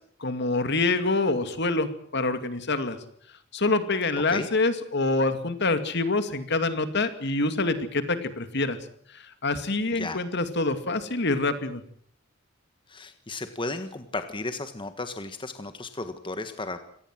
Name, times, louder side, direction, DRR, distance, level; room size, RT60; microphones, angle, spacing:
voice 1, 0.2-3.0 3.5-8.8 9.1-11.8, left 3 dB, 60° left, 10 dB, 2.4 m, -26 dB
voice 2, 12.9-16.8, left 2 dB, 25° left, 9 dB, 1.5 m, -34 dB
26.0 x 18.5 x 7.6 m, 0.62 s
head